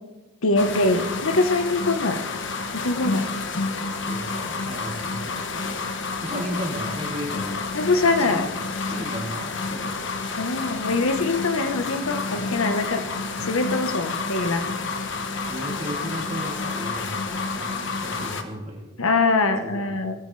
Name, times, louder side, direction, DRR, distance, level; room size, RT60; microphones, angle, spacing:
voice 1, 0.4-2.2 2.7-3.3 6.3-6.4 7.7-8.5 10.4-13.0 13.4-14.6 19.0-20.1, left 3 dB, 75° left, 7 dB, 1.2 m, -23 dB
sound 1, 0.6-18.4, left 4 dB, 55° left, 1.2 m, -29 dB
voice 2, 4.0-5.8 6.2-7.6 8.2-10.0 15.4-18.9 19.6-20.1, equal, 30° right, -1 dB, 2.8 m, -35 dB
21.0 x 13.5 x 3.3 m, 1.1 s
head